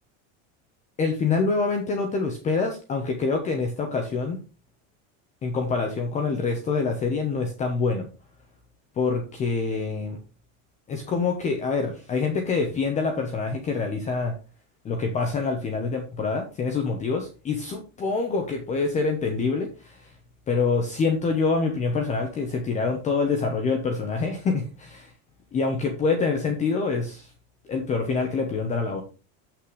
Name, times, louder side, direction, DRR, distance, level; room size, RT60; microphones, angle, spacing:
voice 1, 1.0-4.4 5.4-8.1 9.0-10.2 10.9-14.3 14.8-20.1 20.5-25.1 25.5-27.3 27.7-29.0, left 4 dB, 20° left, 4 dB, 1.0 m, -26 dB
8.1 x 6.0 x 4.9 m, 0.34 s
cardioid pair, 180°, 38 cm